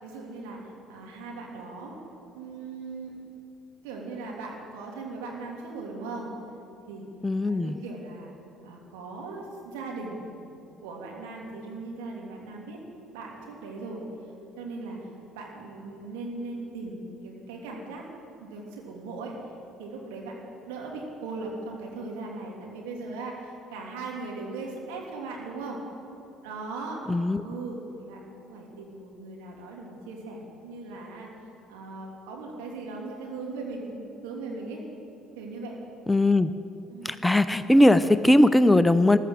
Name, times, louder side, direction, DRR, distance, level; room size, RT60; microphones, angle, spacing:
voice 1, 0.0-1.9 2.3-3.2 3.8-6.3 6.9-7.1 7.4-8.3 8.6-10.2 10.8-12.8 13.1-14.0 14.6-18.0 18.4-19.4 19.8-20.3 20.6-25.8 26.4-27.0 27.4-31.3 31.7-34.8 35.3-35.7 36.9-37.2, right 3 dB, 70° right, -1 dB, 3.0 m, -38 dB
voice 2, 7.2-7.8 27.1-27.4 36.1-36.5 37.0-39.2, left 1 dB, 10° left, 13 dB, 0.6 m, -19 dB
14.5 x 12.5 x 7.8 m, 2.9 s
figure-of-eight pair, 55°, 0 cm